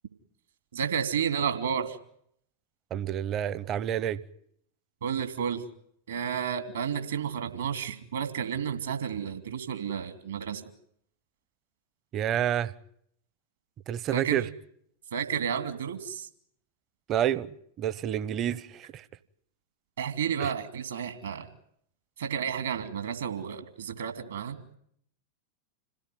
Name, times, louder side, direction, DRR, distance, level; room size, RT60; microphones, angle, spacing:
voice 1, 0.7-2.0 5.0-5.6 6.1-10.6 14.1-14.4 15.1-16.3 20.0-21.5 22.2-24.6, right 7 dB, 65° right, 2.8 m, -31 dB
voice 2, 2.9-4.2 12.1-12.7 13.9-14.5 17.1-19.0 20.4-20.5, right 10 dB, 30° right, 0.9 m, -29 dB
27.0 x 17.5 x 9.5 m
figure-of-eight pair, 90°, 0 cm